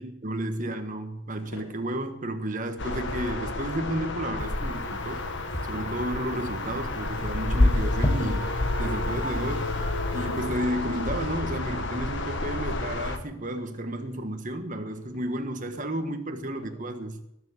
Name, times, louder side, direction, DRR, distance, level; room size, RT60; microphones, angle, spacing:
voice 1, 0.0-5.2 5.7-9.7 10.1-17.2, right 1 dB, 35° right, 1.5 m, -32 dB
sound 1, 1.3-1.9 2.8-3.6 3.9-4.6 5.0-5.3 5.6-5.7 6.0-6.5 6.9-7.6 7.9-8.8 9.1-9.8 10.3-11.4 11.7-12.0 12.3-12.7 12.9-13.1 13.4-14.2 14.9-16.1 16.3-16.8, left 1 dB, 80° left, 3.9 m, -47 dB
sound 2, 2.8-13.2, left 2 dB, 55° left, 1.5 m, -29 dB
sound 3, 4.4-9.6 9.8-10.4, left 1 dB, 20° left, 1.5 m, -35 dB
19.5 x 7.3 x 8.8 m
head